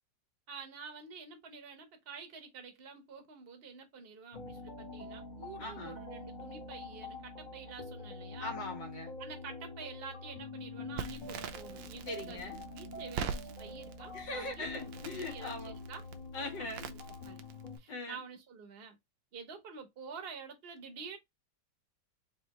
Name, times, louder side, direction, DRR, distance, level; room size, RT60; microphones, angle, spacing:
voice 1, 0.5-8.5 9.2-14.7 15.0-16.0 16.7-17.0 17.2-17.4 17.8-19.0 19.3-21.2, right 5 dB, 40° right, 1.0 m, -48 dB
sound 1, 4.3-17.8, left 2 dB, 30° left, 1.1 m, -46 dB
voice 2, 5.6-6.0 8.4-9.2 12.0-12.6 14.1-15.8 16.3-16.9 17.9-18.2, left 2 dB, 75° left, 2.1 m, -41 dB
Crackle, 11.0-17.8, right 7 dB, 85° right, 1.3 m, -44 dB
4.2 x 3.0 x 2.9 m
omnidirectional pair, 2.0 m